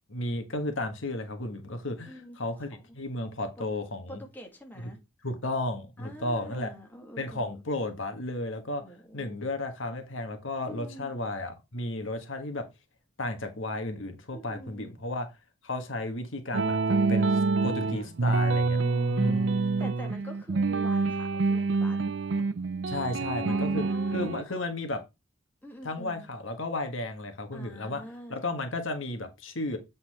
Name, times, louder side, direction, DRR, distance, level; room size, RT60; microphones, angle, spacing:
voice 1, 0.1-4.2 5.2-6.7 7.2-8.8 9.1-12.6 13.2-15.3 15.6-18.8 19.1-19.5 22.9-23.8 24.1-25.0 25.8-28.0 28.3-29.8, left 2 dB, 70° left, 1.5 m, -33 dB
voice 2, 2.0-2.8 3.6-3.7 4.1-5.0 6.0-7.6 8.8-9.4 10.6-11.3 14.3-14.9 18.7-22.0 23.5-24.6 25.6-26.3 27.5-28.4, equal, 10° left, 1.8 m, -46 dB
sound 1, 16.5-24.4, right 3 dB, 60° right, 0.5 m, -26 dB
8.3 x 4.2 x 4.3 m
head